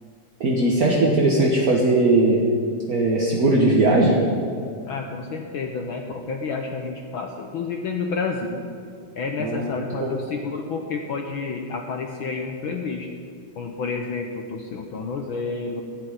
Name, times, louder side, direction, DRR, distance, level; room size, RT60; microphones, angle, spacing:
voice 1, 0.4-2.4 2.9-4.2 9.4-9.7 10.0-10.1, right 2 dB, 50° right, -2 dB, 1.0 m, -19 dB
voice 2, 4.9-8.7 9.1-13.1 13.6-15.8, left 4 dB, 90° left, 3 dB, 1.1 m, -30 dB
15.0 x 6.5 x 9.9 m, 2.3 s
omnidirectional pair, 3.4 m